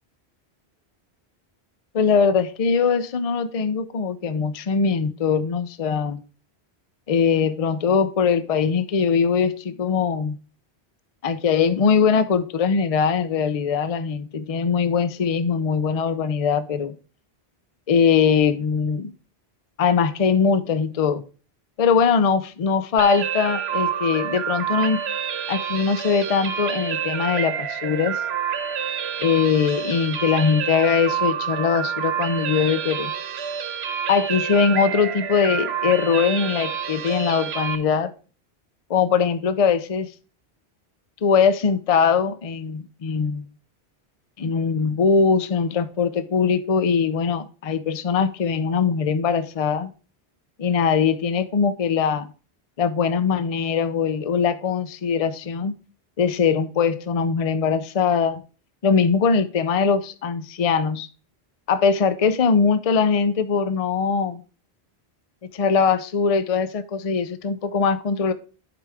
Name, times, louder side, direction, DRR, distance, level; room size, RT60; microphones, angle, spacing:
voice 1, 1.9-6.2 7.1-10.4 11.2-17.0 17.9-19.1 19.8-21.2 21.8-25.1 25.5-28.2 29.2-33.1 34.1-38.1 38.9-40.1 41.2-43.5 44.4-49.9 50.6-52.3 52.8-55.7 56.2-58.4 58.8-61.1 61.7-64.4 65.5-68.3, left 6 dB, 40° left, 0.6 m, -21 dB
sound 1, 23.0-37.8, right 8 dB, 80° right, 1.1 m, -28 dB
10.5 x 5.0 x 3.4 m
omnidirectional pair, 1.1 m